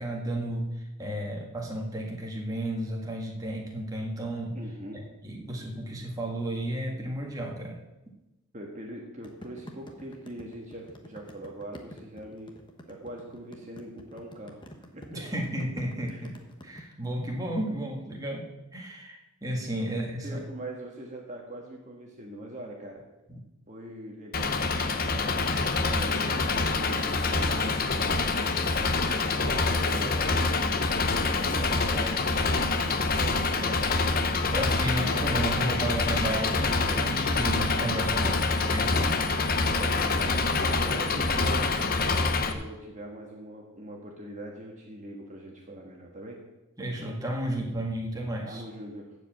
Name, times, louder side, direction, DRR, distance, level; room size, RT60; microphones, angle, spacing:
voice 1, 0.0-4.6 4.9-7.8 15.1-16.3 16.6-18.4 18.7-20.4 34.5-39.3 46.8-48.6, right 1 dB, 15° right, -1 dB, 1.7 m, -33 dB
voice 2, 4.5-5.0 8.5-12.5 12.9-14.6 14.9-15.2 16.0-16.2 20.2-23.0 23.7-24.5 25.1-27.7 27.9-28.4 29.3-32.8 33.2-33.8 39.7-41.8 42.5-46.4 48.4-49.1, right 1 dB, 35° right, 0 dB, 1.5 m, -42 dB
sound 1, 9.2-16.8, left 1 dB, 20° left, 1.1 m, -47 dB
Engine, 24.3-42.5, left 3 dB, 40° left, 0.8 m, -26 dB
15.0 x 5.1 x 7.7 m, 1.0 s
head